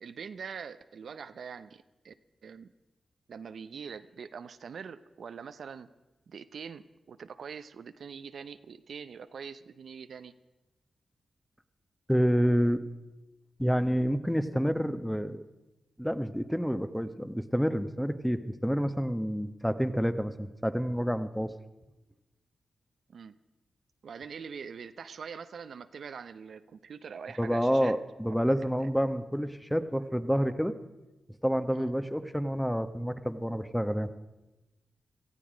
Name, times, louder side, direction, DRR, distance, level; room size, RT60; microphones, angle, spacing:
voice 1, 0.0-2.1 2.4-2.7 3.3-5.9 6.3-10.3 23.1-23.3 24.0-28.0 28.2-28.3 28.8-28.9 31.7-31.9, right 6 dB, 75° right, 12 dB, 0.6 m, -43 dB
voice 2, 12.1-12.8 13.6-15.5 16.0-21.5 27.4-30.7 31.4-34.1, equal, ahead, 10 dB, 1.0 m, -28 dB
18.0 x 14.0 x 5.1 m, 1.1 s
cardioid pair, 50°, 0 cm